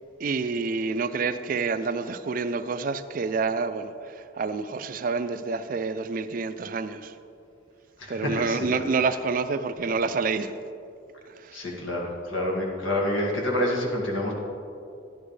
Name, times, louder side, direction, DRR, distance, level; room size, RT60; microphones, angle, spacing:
voice 1, 0.2-7.1 8.1-10.5 11.4-11.6, right 4 dB, 45° right, 0.4 m, -28 dB
voice 2, 8.0-8.9 11.5-14.3, left 1 dB, 85° left, 1.9 m, -28 dB
11.5 x 11.0 x 3.3 m
head